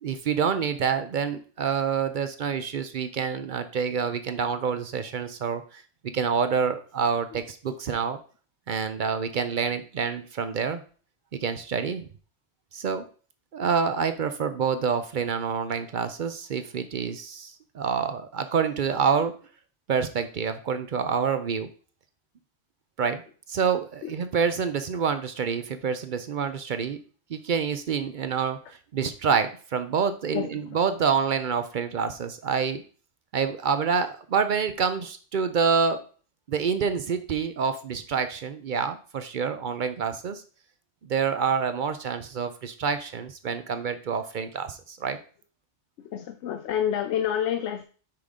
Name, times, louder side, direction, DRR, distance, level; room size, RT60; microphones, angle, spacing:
voice 1, 0.0-5.8 6.1-8.2 8.7-10.8 11.3-12.1 12.7-13.1 13.5-19.3 19.9-21.7 23.0-23.2 23.5-27.0 27.3-32.8 33.3-36.0 36.5-40.4 41.1-45.2, right 6 dB, 55° right, 9 dB, 0.6 m, -27 dB
voice 2, 46.0-47.8, left 9 dB, 85° left, 8 dB, 0.9 m, -28 dB
5.9 x 4.9 x 3.6 m, 0.40 s
omnidirectional pair, 1.2 m